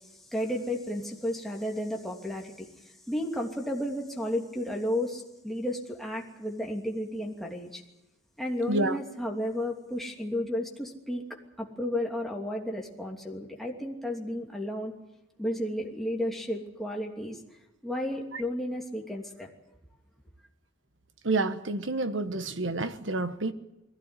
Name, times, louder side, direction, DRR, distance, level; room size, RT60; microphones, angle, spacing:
voice 1, 0.3-2.7 3.1-7.8 8.4-11.2 11.6-14.9 15.4-17.4 17.8-19.5, left 1 dB, ahead, -1 dB, 2.9 m, -32 dB
voice 2, 21.2-23.5, right 2 dB, 70° right, 10 dB, 1.3 m, -29 dB
21.5 x 16.0 x 9.9 m, 0.95 s
head